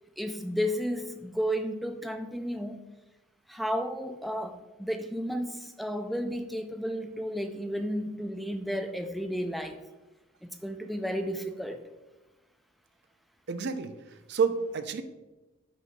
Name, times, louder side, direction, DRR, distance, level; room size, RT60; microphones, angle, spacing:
voice 1, 0.2-2.8 3.5-9.8 10.4-11.8, equal, ahead, 6 dB, 0.3 m, -33 dB
voice 2, 13.5-13.9 14.3-15.0, right 5 dB, 55° right, 10 dB, 0.5 m, -28 dB
6.3 x 4.3 x 5.2 m, 1.1 s
head